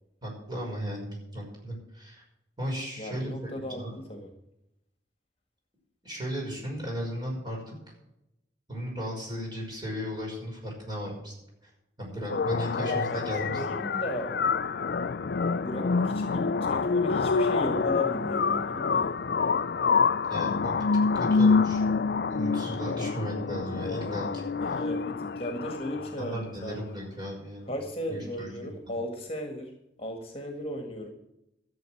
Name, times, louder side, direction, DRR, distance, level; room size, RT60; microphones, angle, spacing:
voice 1, 0.2-2.2 2.6-4.0 6.0-7.8 8.7-11.3 11.6-11.7 12.0-13.6 20.3-20.9 21.1-21.8 22.3-24.8 26.2-27.7 28.1-28.7, equal, 25° right, -2 dB, 6.0 m, -36 dB
voice 2, 3.0-4.3 12.7-14.4 15.6-19.1 24.6-26.8 27.7-29.7 30.0-31.1, equal, 30° left, 4 dB, 1.8 m, -36 dB
sound 1, 12.3-26.3, left 4 dB, 60° left, 0.5 m, -27 dB
13.5 x 7.5 x 7.9 m, 0.87 s
head